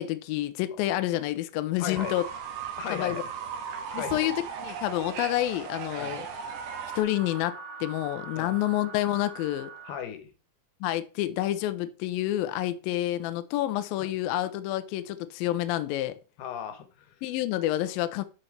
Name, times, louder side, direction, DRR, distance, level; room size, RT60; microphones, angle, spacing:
voice 1, 0.0-2.2 2.9-3.1 3.9-6.2 7.0-9.7 10.8-16.2 17.2-18.2, left 14 dB, 90° left, 2.0 m, -28 dB
voice 2, 1.8-2.1 2.8-3.3 3.9-4.3 6.0-6.2 8.4-8.6 9.9-10.3 14.0-14.1 16.4-17.2, left 9 dB, 75° left, 2.8 m, -37 dB
Fowl / Bird, 2.0-7.0, right 7 dB, 80° right, 3.4 m, -37 dB
sound 1, 3.4-10.0, right 4 dB, 50° right, 0.8 m, -45 dB
11.0 x 4.2 x 3.3 m
omnidirectional pair, 5.0 m